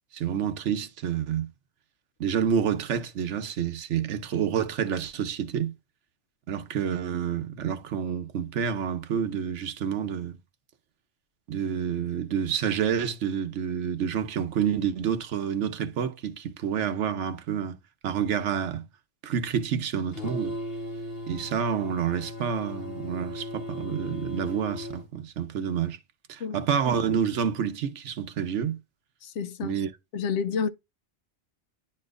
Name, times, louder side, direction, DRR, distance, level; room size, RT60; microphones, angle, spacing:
voice 1, 0.1-1.5 2.2-5.7 6.5-10.4 11.5-17.8 18.0-18.8 19.2-20.6 21.3-26.0 26.3-28.8 29.6-29.9, right 8 dB, 85° right, 1.1 m, -28 dB
sound 1, 20.1-25.1, left 1 dB, 55° left, 2.0 m, -37 dB
voice 2, 29.2-29.8 30.1-30.7, left 6 dB, 85° left, 1.0 m, -29 dB
10.5 x 4.4 x 2.5 m
omnidirectional pair, 1.2 m